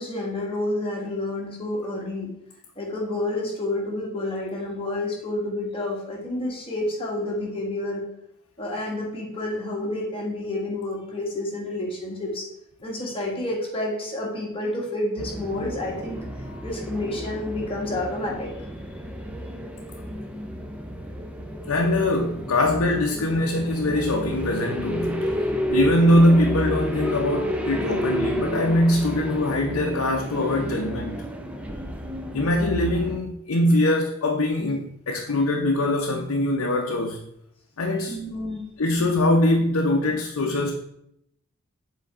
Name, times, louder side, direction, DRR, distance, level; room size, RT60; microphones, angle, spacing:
voice 1, 0.0-2.3 2.7-8.0 8.6-12.5 12.8-16.2 16.6-18.5 38.1-38.6, left 1 dB, 25° left, 1.6 m, -29 dB
sound 1, 15.2-33.2, equal, 5° right, 0.5 m, -31 dB
voice 2, 21.7-25.4 25.7-31.2 32.3-37.2 37.8-38.2 38.8-40.7, left 1 dB, 70° left, 0.6 m, -22 dB
7.3 x 3.9 x 3.5 m
head